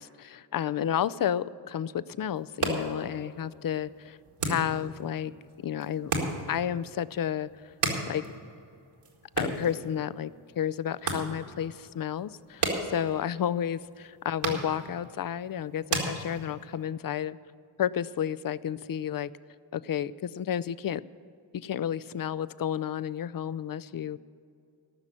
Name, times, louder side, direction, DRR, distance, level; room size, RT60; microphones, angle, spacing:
voice 1, 0.0-4.2 4.4-5.3 5.6-6.1 6.5-7.7 8.1-8.2 9.4-17.4 17.8-19.3 19.7-21.0 21.5-24.2, left 9 dB, 45° left, 16 dB, 0.5 m, -31 dB
sound 1, 2.3-16.8, right 3 dB, 85° right, 1.9 m, -36 dB
14.0 x 6.1 x 9.0 m, 2.3 s
cardioid pair, 40°, 49 cm